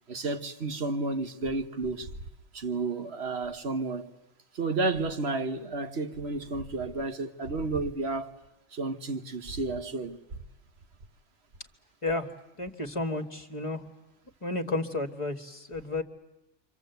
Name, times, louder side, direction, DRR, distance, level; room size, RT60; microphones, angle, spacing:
voice 1, 0.1-2.1 2.5-4.1 4.5-8.4 8.7-10.4, right 3 dB, 60° right, 1.5 m, -31 dB
voice 2, 12.6-13.8 14.4-16.0, left 2 dB, 25° left, 1.7 m, -32 dB
29.0 x 25.0 x 8.1 m
omnidirectional pair, 1.2 m